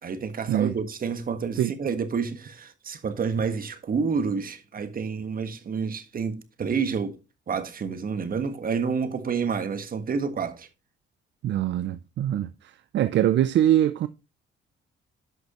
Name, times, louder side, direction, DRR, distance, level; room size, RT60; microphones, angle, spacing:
voice 1, 0.0-7.2 7.5-10.7, right 5 dB, 45° right, 1.5 m, -29 dB
voice 2, 11.4-12.5 12.9-14.1, right 11 dB, 65° right, 0.5 m, -22 dB
11.0 x 6.3 x 3.0 m
cardioid pair, 90°, 20 cm